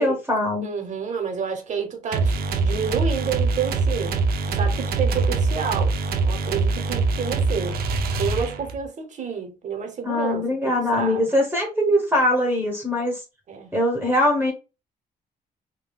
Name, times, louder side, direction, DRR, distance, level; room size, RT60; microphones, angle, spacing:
voice 1, 0.0-0.7 10.0-13.2 13.7-14.5, left 1 dB, 10° right, 0.9 m, -22 dB
voice 2, 0.6-7.8 8.2-11.3 13.5-13.7, right 6 dB, 50° right, 0.9 m, -29 dB
sound 1, 2.1-8.8, right 3 dB, 75° right, 0.5 m, -23 dB
3.6 x 2.2 x 2.3 m
cardioid pair, 105°, 16 cm